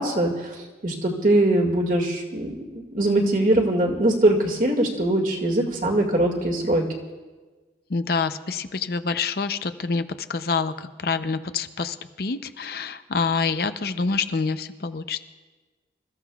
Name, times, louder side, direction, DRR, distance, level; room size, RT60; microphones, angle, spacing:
voice 1, 0.0-2.5 2.9-6.8, right 1 dB, 45° right, 1 dB, 2.0 m, -22 dB
voice 2, 7.9-10.0 10.3-15.2, left 4 dB, 55° left, 10 dB, 0.6 m, -27 dB
26.5 x 15.0 x 2.4 m, 1.3 s
head